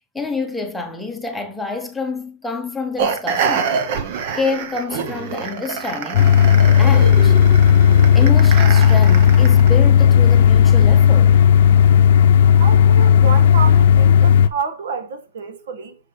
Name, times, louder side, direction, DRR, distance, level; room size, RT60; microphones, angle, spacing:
voice 1, 0.1-3.8 4.3-6.4 6.8-7.4 8.1-11.4, left 3 dB, 5° left, 1.0 m, -27 dB
sound 1, 3.0-9.8, right 6 dB, 45° right, 0.9 m, -26 dB
sound 2, 6.1-14.5, left 8 dB, 70° left, 0.6 m, -12 dB
voice 2, 12.6-16.0, right 5 dB, 80° right, 1.4 m, -29 dB
6.6 x 4.8 x 4.0 m
supercardioid pair, 170°, 0 cm